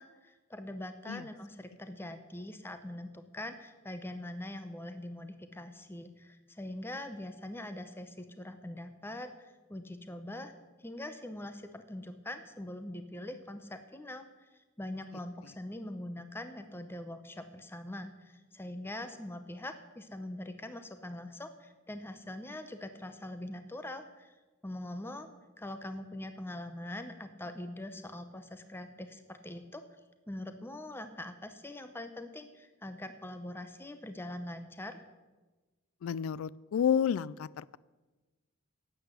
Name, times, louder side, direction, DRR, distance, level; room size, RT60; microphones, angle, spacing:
voice 1, 0.0-10.5 10.8-14.3 14.8-24.3 24.6-25.3 25.6-29.8 30.3-35.0, left 1 dB, 10° left, 9 dB, 0.7 m, -43 dB
voice 2, 36.0-37.8, left 8 dB, 70° left, 20 dB, 0.3 m, -30 dB
11.5 x 7.9 x 8.1 m, 1.2 s
head